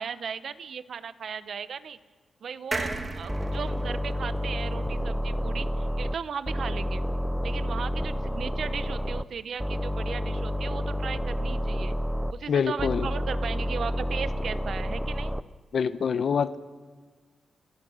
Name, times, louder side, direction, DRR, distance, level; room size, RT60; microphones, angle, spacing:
voice 1, 0.0-2.0 2.4-7.0 7.4-12.0 12.3-15.3, right 7 dB, 60° right, 13 dB, 0.9 m, -36 dB
sound 1, 2.7-6.2 6.6-6.7 6.9-7.0, right 2 dB, 25° right, 1.9 m, -37 dB
sound 2, 3.3-6.1 6.4-9.2 9.6-12.3 12.8-15.4, equal, ahead, 0.6 m, -29 dB
voice 2, 12.5-13.1 15.7-16.6, left 6 dB, 55° left, 13 dB, 0.9 m, -25 dB
29.5 x 17.5 x 6.3 m, 1.4 s
wide cardioid pair, 150°, 0 cm